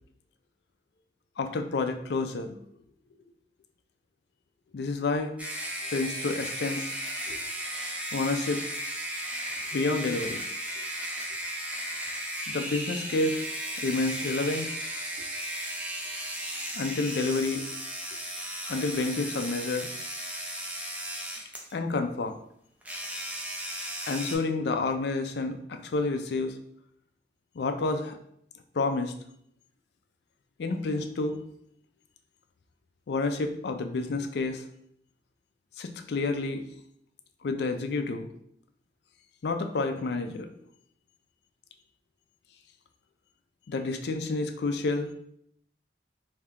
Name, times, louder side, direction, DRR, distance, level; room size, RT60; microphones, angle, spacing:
voice 1, 1.4-2.6 4.7-5.3 5.9-6.9 7.3-7.4 8.1-8.6 9.7-10.4 12.5-13.4 13.8-14.7 16.7-17.6 18.7-19.9 21.7-22.4 24.0-26.6 27.6-28.2 28.7-29.1 30.6-31.4 33.1-34.6 35.8-36.6 37.4-38.3 39.4-40.5 43.7-45.1, left 3 dB, 65° left, 6 dB, 0.4 m, -29 dB
sound 1, 5.4-21.7 22.8-24.3, right 1 dB, 10° right, 0.5 m, -35 dB
3.6 x 2.7 x 3.3 m, 0.70 s
head